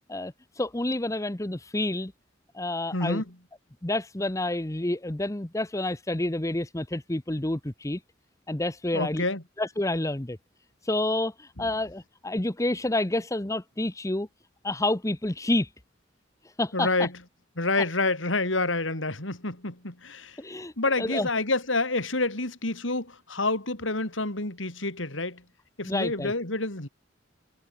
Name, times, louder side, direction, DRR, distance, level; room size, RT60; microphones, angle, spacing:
voice 1, 0.1-2.1 2.5-3.2 3.8-8.0 8.5-9.2 9.6-10.4 10.8-14.3 14.6-15.7 16.6-17.1 20.4-20.7 21.0-21.3 25.8-26.3, left 1 dB, 15° left, 1.0 m, -29 dB
voice 2, 2.9-3.2 8.9-9.4 11.6-11.7 16.7-17.1 17.6-20.4 20.8-25.4 25.8-26.9, left 2 dB, 80° left, 4.6 m, -28 dB
head